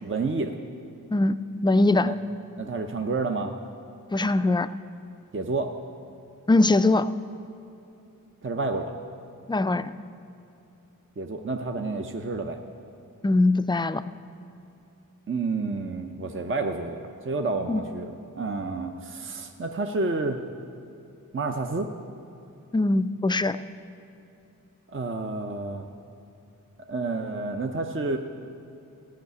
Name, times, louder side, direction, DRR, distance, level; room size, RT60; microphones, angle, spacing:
voice 1, 0.0-0.5 2.0-2.1 2.6-3.5 5.3-5.7 8.4-9.0 11.2-12.6 15.3-20.4 21.3-21.9 24.9-25.9 26.9-28.2, right 3 dB, 40° right, 5 dB, 0.7 m, -29 dB
voice 2, 1.6-2.1 4.1-4.7 6.5-7.1 9.5-9.9 13.2-14.0 17.7-17.8 22.7-23.6, left 2 dB, 15° left, 13 dB, 0.3 m, -21 dB
15.0 x 5.7 x 9.4 m, 2.9 s
wide cardioid pair, 80°, 33 cm